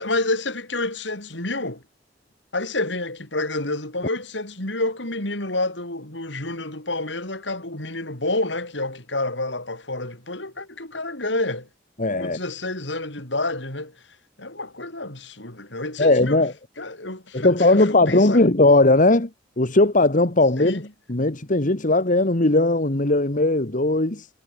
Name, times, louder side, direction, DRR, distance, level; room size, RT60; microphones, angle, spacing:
voice 1, 0.0-1.8 2.5-11.7 12.2-14.0 14.4-16.4 16.8-18.4 20.6-20.9, left 2 dB, 70° left, 6.5 m, -29 dB
voice 2, 12.0-12.4 16.0-16.5 17.3-19.3 19.6-20.8 21.1-24.3, left 2 dB, 45° left, 1.8 m, -18 dB
head